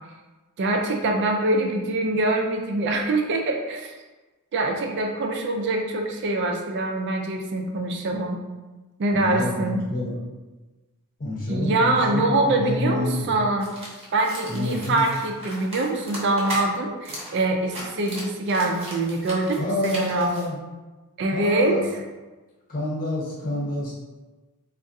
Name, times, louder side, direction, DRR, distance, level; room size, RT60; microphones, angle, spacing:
voice 1, 0.6-3.9 4.5-8.4 9.0-9.8 11.5-13.7 14.1-20.3 21.2-21.8, right 2 dB, 50° right, 2 dB, 0.4 m, -24 dB
voice 2, 9.1-10.2 11.2-13.3 14.5-15.0 19.6-20.6 21.3-21.9 22.7-23.9, left 1 dB, 40° left, -5 dB, 0.9 m, -28 dB
sound 1, 13.6-16.6 17.0-17.3 17.6-20.5, equal, 25° right, 0.8 m, -37 dB
3.5 x 2.3 x 2.6 m, 1.2 s
head